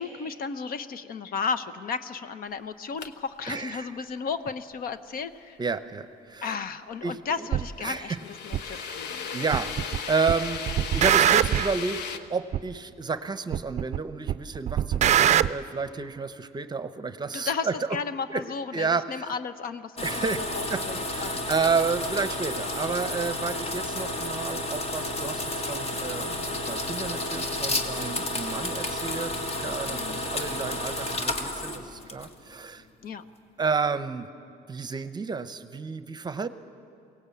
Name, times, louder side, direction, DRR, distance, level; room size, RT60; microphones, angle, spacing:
voice 1, 0.0-5.6 6.4-9.7 17.3-21.5 29.9-30.2 33.0-33.2, left 5 dB, 60° left, 12 dB, 0.9 m, -34 dB
sound 1, 3.0-3.1 7.8-12.2, left 6 dB, 85° left, 1.1 m, -36 dB
voice 2, 3.5-3.9 5.6-6.5 7.0-7.5 7.8-8.2 8.6-9.7 10.1-10.6 10.9-12.0 12.3-17.8 18.3-18.4 18.7-19.3 20.0-32.8 33.6-34.3 34.7-36.5, right 4 dB, 25° right, 12 dB, 0.8 m, -31 dB
sound 2, 7.5-7.7 8.5-8.6 9.5-10.0 10.3-11.8 12.5-12.6 13.5-14.0 14.3-15.5, right 10 dB, 45° right, 0.5 m, -22 dB
sound 3, 20.0-32.5, left 1 dB, 35° left, 1.7 m, -31 dB
22.5 x 17.5 x 8.4 m, 2.5 s
cardioid pair, 110°, 17 cm